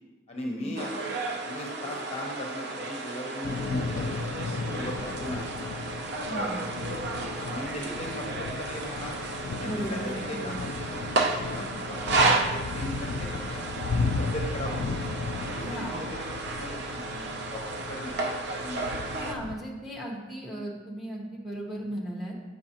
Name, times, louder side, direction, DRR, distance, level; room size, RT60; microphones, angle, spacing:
voice 1, 0.3-1.1 1.4-5.6 6.1-9.1 9.6-11.1 11.5-14.9 15.4-19.1, equal, 35° left, 0 dB, 0.8 m, -39 dB
sound 1, 0.8-19.3, right 3 dB, 55° right, 0.6 m, -32 dB
Thunder / Rain, 3.4-19.6, left 4 dB, 85° left, 0.4 m, -35 dB
voice 2, 6.2-6.6 9.6-10.6 15.6-16.1 19.2-22.3, equal, ahead, -3 dB, 1.0 m, -36 dB
7.6 x 5.3 x 2.9 m, 1.2 s
head